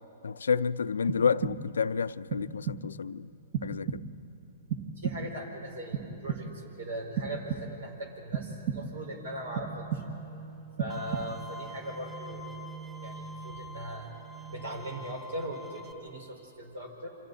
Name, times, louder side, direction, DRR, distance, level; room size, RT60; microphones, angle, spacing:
voice 1, 0.2-3.3 3.6-4.0, left 6 dB, 90° left, 0.4 m, -29 dB
sound 1, 1.1-1.9 2.3-3.0 3.5-4.3 4.7-5.5 5.9-6.7 7.2-8.0 8.3-9.1 9.6-10.4 10.8-11.6, right 7 dB, 50° right, 1.3 m, -35 dB
voice 2, 5.0-10.0 10.8-12.5 13.0-14.1 14.5-17.1, right 1 dB, 75° right, 4.6 m, -39 dB
sound 2, 8.8-14.8, right 6 dB, 35° right, 3.1 m, -46 dB
Bowed string instrument, 10.9-15.9, left 2 dB, 5° right, 1.7 m, -47 dB
29.0 x 26.0 x 4.1 m
hypercardioid pair, 130°, 0 cm